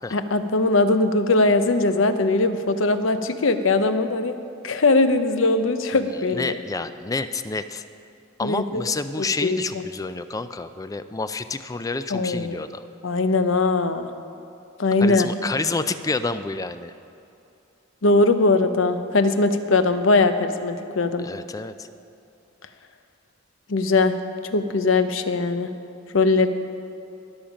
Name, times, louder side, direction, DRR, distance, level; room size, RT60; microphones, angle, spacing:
voice 1, 0.1-4.3 4.6-6.6 8.4-8.8 9.2-9.8 12.1-12.6 13.0-14.1 14.8-15.3 18.0-21.3 23.7-24.2 24.5-25.7 26.1-26.5, left 3 dB, 75° left, 10 dB, 0.7 m, -20 dB
voice 2, 6.3-7.8 8.4-12.8 15.0-16.9 21.2-21.9, left 3 dB, 15° left, 11 dB, 0.4 m, -29 dB
21.0 x 7.2 x 5.1 m, 2.8 s
head